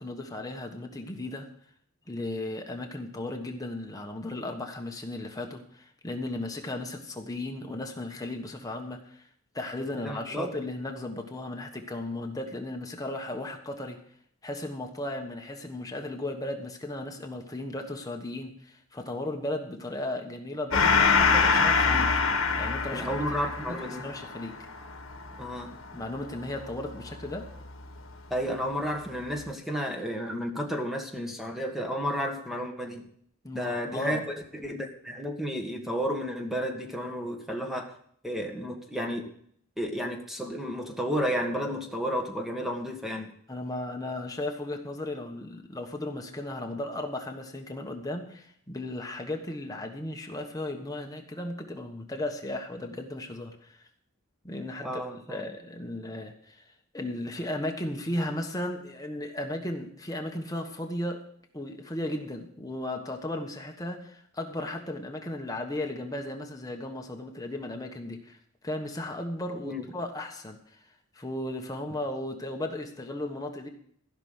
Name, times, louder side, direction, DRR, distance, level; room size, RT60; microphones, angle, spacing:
voice 1, 0.0-1.5 2.1-9.3 9.5-14.0 14.4-22.2 22.6-23.1 23.6-24.6 25.9-27.5 33.4-34.2 43.5-53.9 54.4-55.0 55.3-56.6 56.9-61.2 61.5-68.4 68.6-70.8 71.1-73.7, left 1 dB, 15° left, 3 dB, 1.4 m, -35 dB
voice 2, 10.0-10.5 22.9-24.1 25.4-25.7 28.3-33.1 33.5-37.9 38.2-39.3 39.8-43.3 54.8-55.5 69.6-69.9, equal, ahead, 2 dB, 1.7 m, -32 dB
Gong, 20.7-27.7, left 5 dB, 65° left, 1.6 m, -25 dB
15.0 x 6.0 x 8.0 m, 0.63 s
head